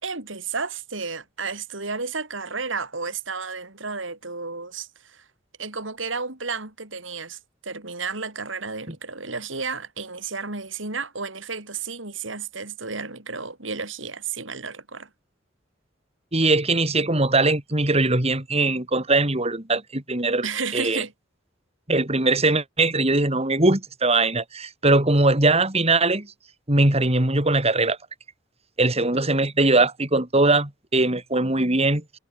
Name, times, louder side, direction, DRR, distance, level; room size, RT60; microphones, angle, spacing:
voice 1, 0.0-5.2 5.6-15.1 20.4-21.1, right 4 dB, 80° right, 5.0 m, -32 dB
voice 2, 16.3-20.5 20.7-21.0 21.9-26.3 26.7-28.0 28.8-32.0, right 2 dB, 30° right, 3.6 m, -21 dB
head